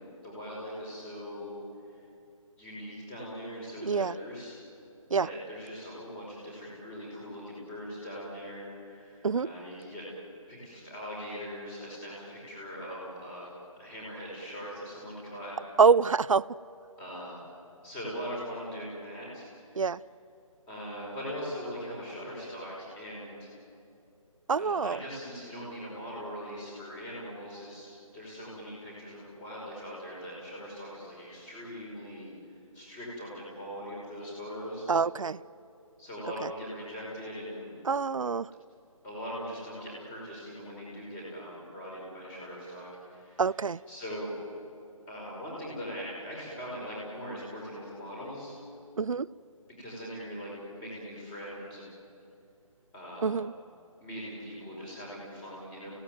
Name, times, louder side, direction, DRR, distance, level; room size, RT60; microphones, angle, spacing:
voice 1, 0.0-1.6 2.6-4.6 5.1-10.1 10.5-13.5 13.8-15.6 17.0-17.4 17.8-19.8 20.7-23.5 24.6-32.3 32.7-34.9 36.0-37.8 39.0-43.4 43.9-44.3 45.1-48.5 49.7-51.8 52.9-53.4 54.0-55.9, equal, 10° left, -4 dB, 5.5 m, -41 dB
voice 2, 3.8-4.1 5.1-5.3 9.2-9.5 15.8-16.5 19.8-20.0 24.5-25.0 34.9-35.4 36.4-36.5 37.8-38.5 43.4-43.8 49.0-49.3 53.2-53.5, right 5 dB, 70° right, 19 dB, 0.6 m, -25 dB
29.5 x 17.0 x 9.4 m, 2.6 s
figure-of-eight pair, 170°, 18 cm